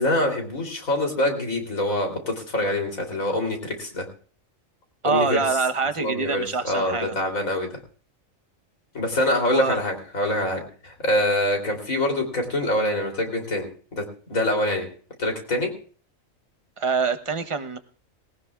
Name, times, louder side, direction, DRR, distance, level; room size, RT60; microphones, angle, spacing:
voice 1, 0.0-4.1 5.0-5.4 6.0-7.7 8.9-14.0 14.3-14.9 15.2-15.7, left 1 dB, 85° left, 3 dB, 3.7 m, -25 dB
voice 2, 5.0-7.1 9.5-9.8 16.8-17.8, right 5 dB, 25° right, 8 dB, 0.9 m, -25 dB
20.0 x 18.5 x 2.4 m, 0.42 s
omnidirectional pair, 1.4 m